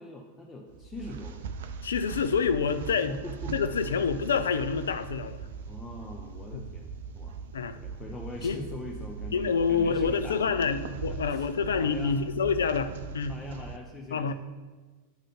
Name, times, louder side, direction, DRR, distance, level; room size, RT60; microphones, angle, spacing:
voice 1, 0.0-1.5 3.1-3.6 5.7-7.4 7.8-11.5 11.7-12.2 13.3-14.3, left 2 dB, 15° left, 0 dB, 0.6 m, -42 dB
sound 1, 0.7-13.8, right 6 dB, 60° right, 0.4 m, -40 dB
voice 2, 1.8-3.1 3.5-5.4 6.5-6.6 7.5-7.8 8.4-8.6 9.3-13.4 14.1-14.3, left 5 dB, 65° left, 11 dB, 0.3 m, -27 dB
8.6 x 3.3 x 3.9 m, 1.3 s
figure-of-eight pair, 90°, 0 cm